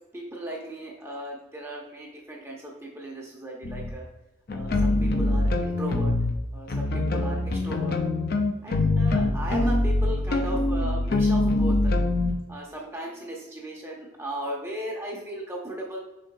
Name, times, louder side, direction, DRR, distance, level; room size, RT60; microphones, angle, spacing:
voice 1, 0.1-4.1 4.5-6.1 6.5-8.0 8.6-11.9 12.5-16.0, right 1 dB, 15° right, -2 dB, 0.7 m, -36 dB
sound 1, 3.6-3.9 4.5-6.3 6.7-12.3, left 2 dB, 50° left, 0.5 m, -24 dB
5.2 x 3.6 x 2.6 m, 1.0 s
head